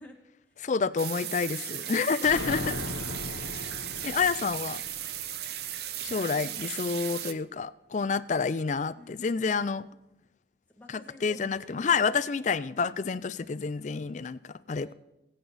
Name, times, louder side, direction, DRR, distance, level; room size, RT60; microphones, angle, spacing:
voice 1, 0.0-0.7 5.4-7.0 8.9-9.9 10.8-12.2 12.9-13.3 14.8-14.9, left 1 dB, 10° left, -1 dB, 2.0 m, -53 dB
voice 2, 0.6-2.8 3.5-3.7 4.0-4.8 6.0-9.8 10.9-14.9, left 5 dB, 40° left, 16 dB, 0.4 m, -29 dB
sound 1, 1.0-7.3, right 11 dB, 55° right, 0.6 m, -36 dB
sound 2, 2.2-5.9, left 2 dB, 75° left, 0.9 m, -38 dB
23.0 x 7.9 x 4.0 m, 0.94 s
head